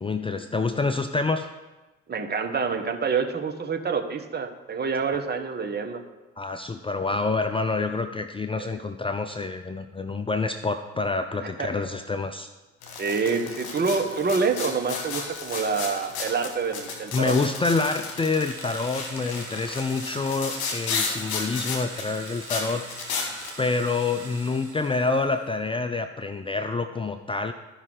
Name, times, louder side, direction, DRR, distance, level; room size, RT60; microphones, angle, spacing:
voice 1, 0.0-1.5 6.4-12.5 17.1-22.9 23.6-27.5, left 3 dB, 15° left, 7 dB, 0.5 m, -27 dB
voice 2, 2.1-6.0 8.6-8.8 11.6-11.7 13.0-17.4, right 5 dB, 30° right, 5 dB, 1.2 m, -27 dB
squeak pole, 12.8-23.5, left 4 dB, 70° left, 1.6 m, -33 dB
sound 1, 18.1-25.5, right 3 dB, 80° right, 1.7 m, -43 dB
13.0 x 5.4 x 4.8 m, 1.1 s
figure-of-eight pair, 45°, 33 cm